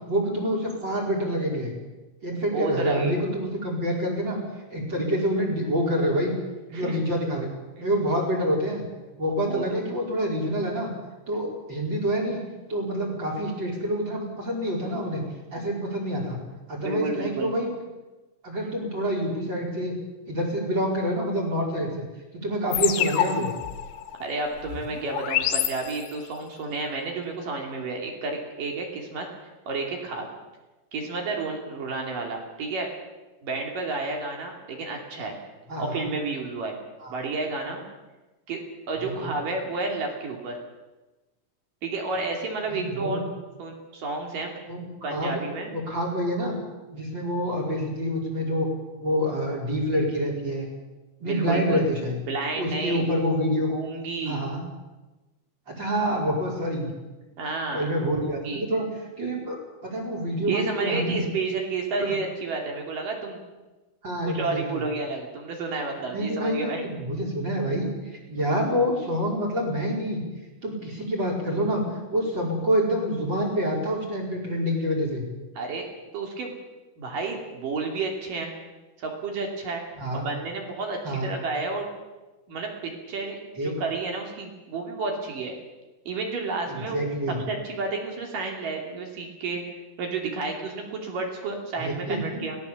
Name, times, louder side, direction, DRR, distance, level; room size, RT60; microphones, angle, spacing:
voice 1, 0.1-1.7 2.2-4.4 4.7-6.3 6.7-7.5 7.8-8.8 9.2-10.9 11.3-12.4 12.7-15.2 15.5-16.4 16.7-17.7 18.4-19.9 20.3-22.0 22.3-23.5 35.7-36.1 37.0-37.1 39.0-39.4 42.7-43.2 44.7-45.4 45.7-46.6 46.9-48.7 49.0-50.7 51.2-52.2 52.6-53.7 54.2-54.7 55.7-56.9 57.7-58.8 59.2-59.6 59.8-61.2 62.0-62.1 64.0-64.8 66.1-70.2 70.6-71.8 72.1-75.3 80.0-80.3 81.0-81.3 83.6-83.8 86.7-87.4 91.8-92.4, equal, 25° right, 0 dB, 4.5 m, -27 dB
voice 2, 2.5-3.2 6.7-7.0 7.8-7.9 9.5-9.8 16.8-17.5 24.2-29.3 29.7-30.3 30.9-32.9 33.4-35.4 35.8-36.8 37.1-37.8 38.5-38.6 38.9-40.6 41.8-43.3 43.6-44.5 45.0-45.7 51.2-51.8 52.3-53.0 53.7-54.5 57.4-57.9 58.2-58.7 60.4-63.4 64.2-66.8 75.6-75.9 76.1-76.5 77.0-78.5 79.0-79.8 80.1-81.9 82.5-85.6 86.1-87.0 87.5-92.6, right 3 dB, 50° right, 2 dB, 3.8 m, -31 dB
sound 1, 22.7-26.4, left 11 dB, 85° left, 3.7 m, -28 dB
23.0 x 18.0 x 7.1 m, 1.1 s
omnidirectional pair, 5.9 m